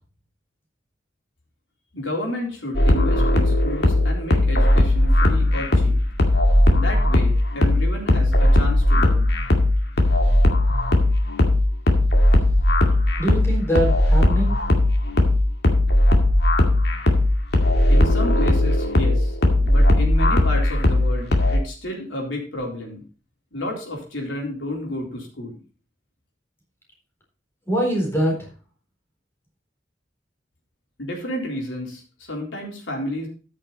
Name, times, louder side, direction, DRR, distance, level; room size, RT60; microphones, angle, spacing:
voice 1, 1.9-6.0 6.7-9.3 17.9-19.4 19.6-23.0 23.5-25.6 31.0-33.3, left 1 dB, 85° left, -1 dB, 4.0 m, -31 dB
sound 1, 2.7-21.6, left 1 dB, 60° left, 2.2 m, -18 dB
voice 2, 13.2-14.6 27.7-28.5, right 1 dB, 15° left, -1 dB, 4.1 m, -23 dB
13.5 x 6.6 x 4.1 m, 0.38 s
head